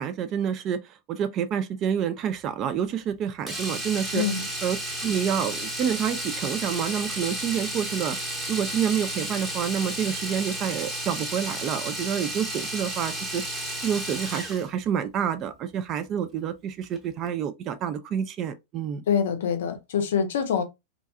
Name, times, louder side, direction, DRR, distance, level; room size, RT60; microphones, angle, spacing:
voice 1, 0.0-4.3 4.6-4.8 5.0-8.2 8.5-13.4 13.8-19.0, right 8 dB, 35° right, 0.3 m, -28 dB
Domestic sounds home sounds, 3.5-14.7 16.8-17.0 17.3-17.4, right 1 dB, 10° right, 0.8 m, -32 dB
voice 2, 4.1-4.4 19.1-20.6, left 7 dB, 60° left, 0.5 m, -25 dB
2.5 x 2.2 x 2.6 m
figure-of-eight pair, 90°, 0 cm